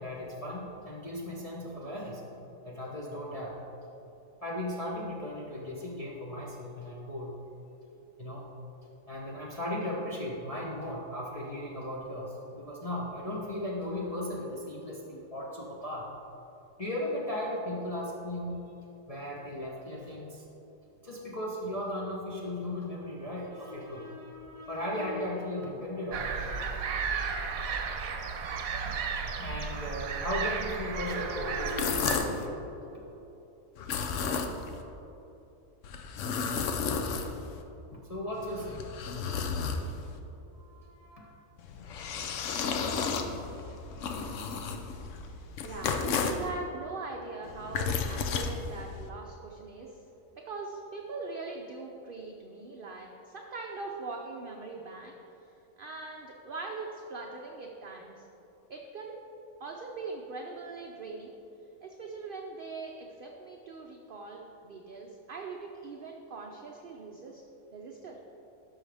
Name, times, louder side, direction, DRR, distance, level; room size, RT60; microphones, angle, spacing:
voice 1, 0.0-2.2 2.6-3.6 4.4-7.3 8.2-8.5 9.1-16.1 16.8-18.6 19.1-20.4 21.0-26.5 29.4-32.6 32.9-33.0 37.9-38.8 40.5-41.3, left 1 dB, 30° left, -5 dB, 0.8 m, -36 dB
sound 1, 26.1-32.2, right 5 dB, 90° right, 1.2 m, -34 dB
sound 2, 31.6-32.5 33.8-34.8 35.8-37.6 38.3-40.2 41.6-46.5 47.4-49.1, left 5 dB, 70° left, 1.0 m, -33 dB
voice 2, 45.3-50.0 50.4-55.1 55.4-55.5 55.8-58.3 58.7-59.2 59.6-61.3 61.8-67.4 67.7-68.2, right 3 dB, 55° right, 0 dB, 0.7 m, -41 dB
12.5 x 5.6 x 3.4 m, 3.0 s
omnidirectional pair, 1.4 m